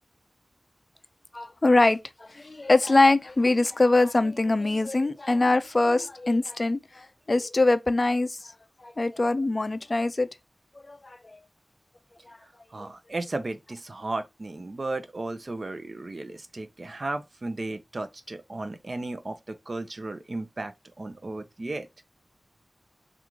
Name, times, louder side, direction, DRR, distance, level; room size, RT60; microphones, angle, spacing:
voice 1, 1.3-2.0 2.3-8.4 8.8-10.3 10.9-11.2, left 2 dB, 40° left, 0.4 m, -23 dB
voice 2, 12.7-21.9, right 2 dB, 50° right, 0.5 m, -35 dB
3.6 x 2.4 x 3.0 m
wide cardioid pair, 70°, 0 cm